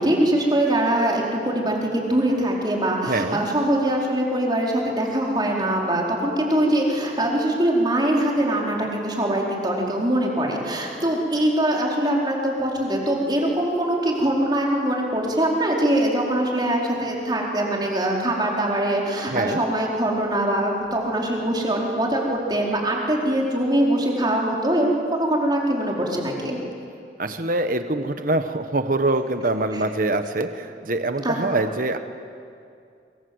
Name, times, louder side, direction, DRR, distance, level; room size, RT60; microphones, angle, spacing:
voice 1, 0.0-26.6 29.7-29.8 31.2-31.4, right 1 dB, 25° right, -2 dB, 4.7 m, -23 dB
voice 2, 3.1-3.4 19.3-19.6 27.2-32.0, right 2 dB, 50° right, 8 dB, 1.2 m, -24 dB
26.0 x 25.5 x 8.1 m, 2.4 s
head